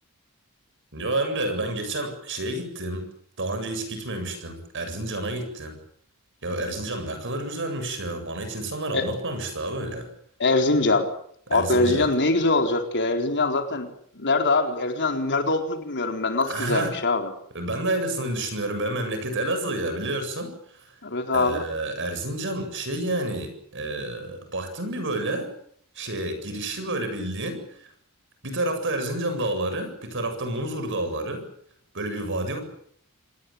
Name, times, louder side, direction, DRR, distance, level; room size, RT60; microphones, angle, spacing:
voice 1, 0.9-3.1 3.4-5.8 6.4-10.1 11.5-12.1 16.5-16.9 17.5-20.9 21.3-25.5 26.0-27.9 28.4-31.4 31.9-32.6, right 2 dB, 55° right, 8 dB, 7.8 m, -29 dB
voice 2, 10.4-11.1 11.5-13.9 14.1-17.3 21.0-21.6, left 3 dB, 55° left, 5 dB, 4.2 m, -23 dB
27.5 x 20.0 x 8.8 m, 0.66 s
head